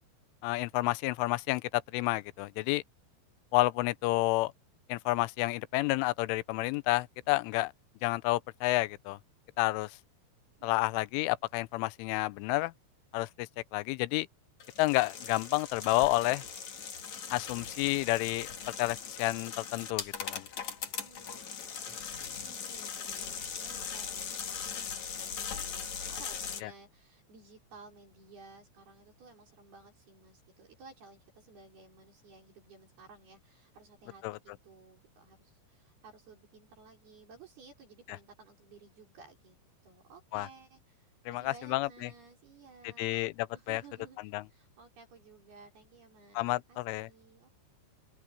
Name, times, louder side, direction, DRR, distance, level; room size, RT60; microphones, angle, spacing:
voice 1, 0.4-2.8 3.5-4.5 4.9-7.7 8.0-9.2 9.6-9.9 10.6-12.7 13.1-14.3 14.8-16.4 17.3-18.5 18.8-20.5 34.2-34.4 40.3-40.5 41.3-42.1 43.0-43.3 43.7-43.8 44.3-44.4 46.4-47.1, left 20 dB, 85° left, 3.2 m, -30 dB
voice 2, 10.6-11.1 21.0-22.0 22.4-39.6 39.8-43.3 43.5-47.5, right 4 dB, 55° right, 7.1 m, -56 dB
sound 1, 14.6-26.6, left 7 dB, 45° left, 2.9 m, -40 dB
open air
omnidirectional pair, 5.5 m